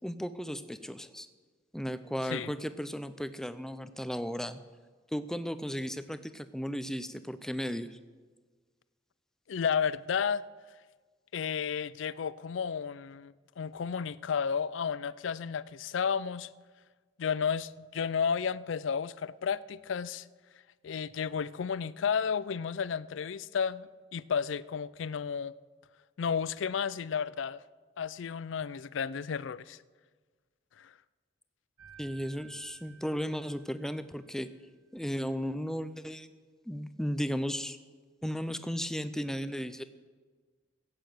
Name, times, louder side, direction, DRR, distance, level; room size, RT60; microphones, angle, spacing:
voice 1, 0.0-1.3 1.7-4.6 5.1-8.0 32.0-34.5 34.9-36.3 36.7-37.8 38.2-39.8, equal, 5° left, 12 dB, 0.5 m, -35 dB
voice 2, 9.5-10.4 11.3-16.5 17.2-20.3 20.8-25.5 26.2-27.6 28.0-29.8 30.8-30.9, left 6 dB, 75° left, 19 dB, 0.4 m, -32 dB
sound 1, 31.8-34.7, right 6 dB, 20° right, 2.4 m, -56 dB
15.5 x 8.7 x 7.8 m, 1.5 s
head